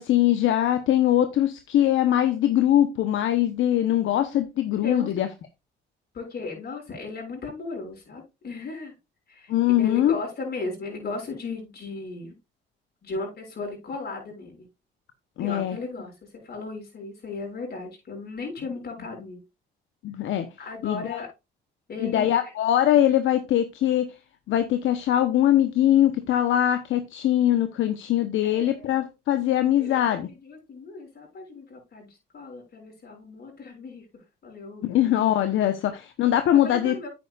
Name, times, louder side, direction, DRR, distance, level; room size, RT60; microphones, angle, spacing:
voice 1, 0.0-5.3 9.5-10.1 15.4-15.8 20.0-20.5 20.8-21.0 22.0-24.1 24.5-30.3 34.8-37.1, left 12 dB, 80° left, 1.1 m, -22 dB
voice 2, 4.8-5.2 6.1-8.9 9.3-12.4 13.0-14.7 15.4-19.4 20.6-21.3 21.9-22.5 28.4-28.9 29.8-35.1 36.5-37.1, left 3 dB, 55° left, 6.6 m, -36 dB
9.4 x 9.3 x 2.5 m
cardioid pair, 90°, 20 cm